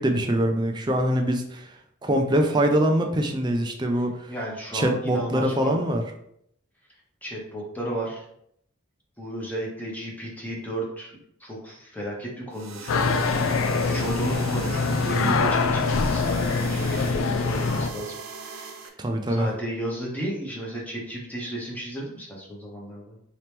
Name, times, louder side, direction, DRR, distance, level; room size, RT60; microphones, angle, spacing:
voice 1, 0.0-1.7 2.0-4.3 4.7-6.0 19.0-19.5, right 1 dB, 20° right, 4 dB, 0.4 m, -23 dB
voice 2, 4.3-5.9 7.2-8.2 9.2-11.1 11.4-18.1 18.4-18.8 19.3-23.2, right 1 dB, 10° left, -3 dB, 0.9 m, -34 dB
sound 1, 12.5-18.9, right 5 dB, 85° right, 0.6 m, -40 dB
sound 2, 12.9-17.9, left 4 dB, 80° left, 0.4 m, -24 dB
4.0 x 2.9 x 3.4 m, 0.72 s
head